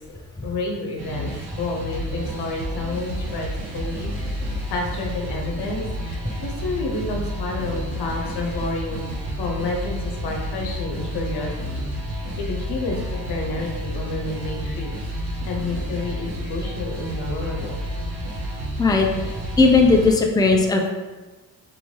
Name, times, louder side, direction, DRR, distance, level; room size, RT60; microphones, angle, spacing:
voice 1, 0.4-1.3 1.6-4.4 4.7-9.1 9.4-14.9 15.5-17.8, left 2 dB, 80° left, 0 dB, 0.9 m, -30 dB
sound 1, 1.0-20.1, equal, 75° right, 1.3 m, -30 dB
voice 2, 19.6-20.9, left 3 dB, 10° left, 1 dB, 0.5 m, -16 dB
4.6 x 2.7 x 3.2 m, 1.2 s
cardioid pair, 75°, 39 cm